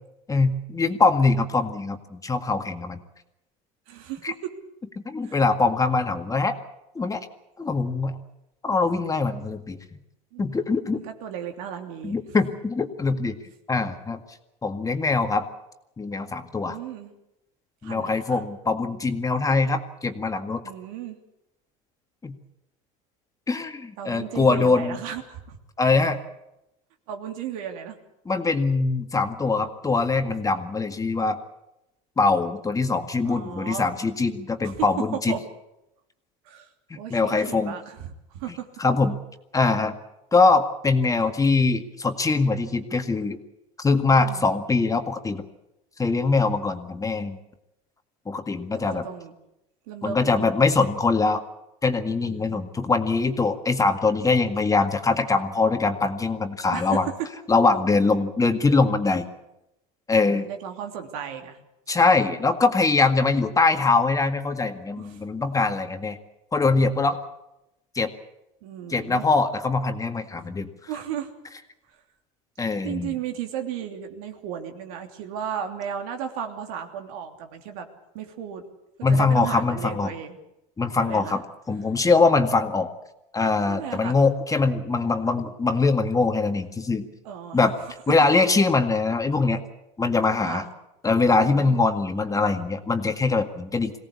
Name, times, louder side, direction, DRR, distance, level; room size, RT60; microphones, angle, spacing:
voice 1, 0.3-3.0 4.2-4.3 5.1-6.5 7.0-7.2 7.6-8.2 8.6-9.8 10.4-11.0 12.0-13.4 13.7-14.2 14.6-15.5 16.0-16.8 17.8-20.6 22.2-22.3 23.5-25.0 25.8-26.2 28.3-31.4 32.2-35.4 36.9-37.8 38.8-39.2 39.5-39.9 40.3-43.4 43.8-45.5 46.0-47.4 48.3-49.0 50.0-51.4 51.8-57.1 57.5-59.3 60.1-60.5 61.9-66.2 66.5-67.2 68.0-68.1 68.9-70.7 72.6-73.2 79.0-80.1 80.8-82.9 83.3-87.1 87.5-87.7 88.1-89.6 90.0-90.6 91.0-93.9, left 3 dB, 20° left, 7 dB, 1.9 m, -22 dB
voice 2, 3.9-4.5 5.2-5.4 10.3-10.6 10.9-12.1 16.6-17.1 17.8-18.4 20.6-21.2 24.0-25.6 27.1-28.0 33.2-33.9 34.6-34.9 35.1-35.4 36.4-36.7 36.9-38.7 44.0-44.4 48.7-49.3 49.9-50.7 52.2-52.6 56.7-57.1 60.2-61.6 65.0-65.2 68.6-69.2 70.9-71.3 72.8-77.9 78.1-78.6 79.0-80.4 81.0-81.4 83.7-84.2 87.2-87.6 90.4-90.7 91.4-91.8, right 9 dB, 80° right, 4 dB, 3.1 m, -35 dB
22.5 x 17.5 x 8.4 m, 0.88 s
supercardioid pair, 105°, 18 cm